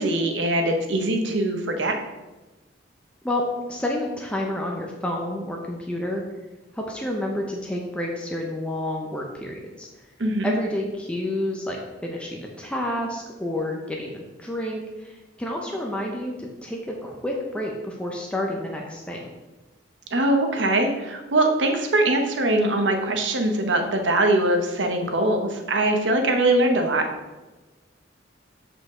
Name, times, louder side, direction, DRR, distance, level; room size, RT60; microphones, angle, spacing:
voice 1, 0.0-1.9 10.2-10.5 20.1-27.1, right 1 dB, 70° right, 4 dB, 1.0 m, -22 dB
voice 2, 3.2-6.2 6.7-9.9 10.4-19.3, left 1 dB, 5° left, -1 dB, 0.7 m, -29 dB
7.9 x 5.0 x 3.7 m, 1.1 s
head